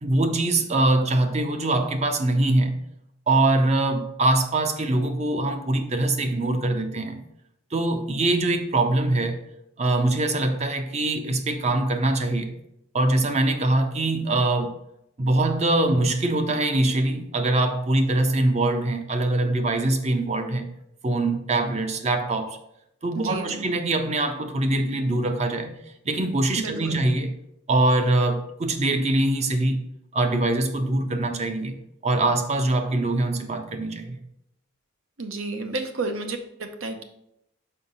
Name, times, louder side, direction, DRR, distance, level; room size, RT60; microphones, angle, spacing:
voice 1, 0.0-2.8 3.3-7.2 7.7-9.4 9.8-12.5 12.9-14.7 15.2-20.7 21.0-22.6 23.0-25.8 26.0-27.4 27.7-29.8 30.1-31.8 32.0-34.2, right 2 dB, 30° right, 7 dB, 0.6 m, -23 dB
voice 2, 23.1-23.7 26.6-27.0 35.2-37.0, right 3 dB, 75° right, 6 dB, 0.8 m, -31 dB
5.7 x 4.8 x 3.9 m, 0.79 s
head